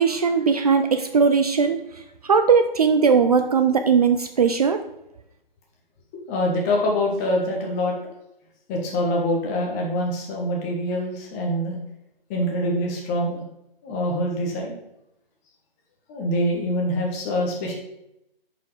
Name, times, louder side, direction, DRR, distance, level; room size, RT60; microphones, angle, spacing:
voice 1, 0.0-1.8 2.3-4.8, right 5 dB, 40° right, 7 dB, 0.5 m, -19 dB
voice 2, 6.3-8.1 8.7-11.8 12.3-13.4 13.8-14.8 16.1-17.7, left 1 dB, 15° left, -1 dB, 1.3 m, -25 dB
8.0 x 5.2 x 4.9 m, 0.85 s
hypercardioid pair, 160°, 29 cm